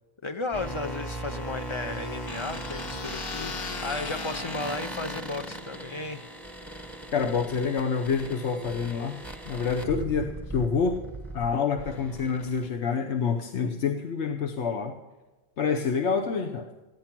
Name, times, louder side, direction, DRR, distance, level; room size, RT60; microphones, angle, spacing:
voice 1, 0.2-6.3, left 3 dB, 45° left, 9 dB, 0.4 m, -34 dB
sound 1, 0.5-12.7, right 1 dB, ahead, 0.8 m, -38 dB
sound 2, 1.2-5.8, left 8 dB, 65° left, 0.8 m, -42 dB
voice 2, 7.1-9.2 9.4-11.0 11.3-15.0 15.6-16.7, left 5 dB, 85° left, 5 dB, 1.1 m, -27 dB
15.0 x 10.5 x 5.9 m, 1.2 s
omnidirectional pair, 1.1 m